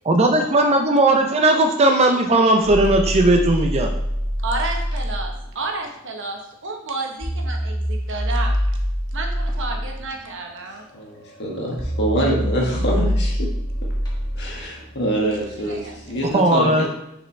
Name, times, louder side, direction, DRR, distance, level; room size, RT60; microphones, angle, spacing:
voice 1, 0.0-3.9 16.3-16.9, right 2 dB, 30° right, 4 dB, 0.5 m, -17 dB
sound 1, 2.2-5.5 7.2-16.3, equal, 20° left, 1.1 m, -26 dB
voice 2, 4.4-8.6 9.1-10.9 15.6-16.3, right 3 dB, 60° right, 2 dB, 1.0 m, -31 dB
voice 3, 10.9-13.5 14.3-16.9, right 1 dB, 55° left, -2 dB, 1.7 m, -25 dB
6.5 x 4.9 x 3.2 m, 0.84 s
head